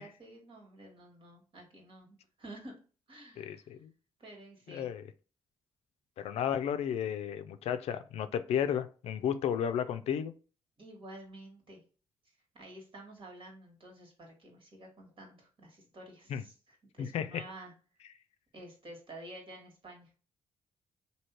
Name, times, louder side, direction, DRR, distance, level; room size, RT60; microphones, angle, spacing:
voice 1, 0.0-2.8 3.1-3.7 4.2-4.9 10.8-11.8 12.5-17.7 18.5-20.2, right 1 dB, 55° right, 1.7 m, -50 dB
voice 2, 3.4-3.9 4.7-5.0 6.2-10.3 16.3-16.4 17.0-17.4, left 9 dB, 80° left, 0.4 m, -33 dB
3.1 x 2.7 x 4.3 m
cardioid pair, 70°, 11 cm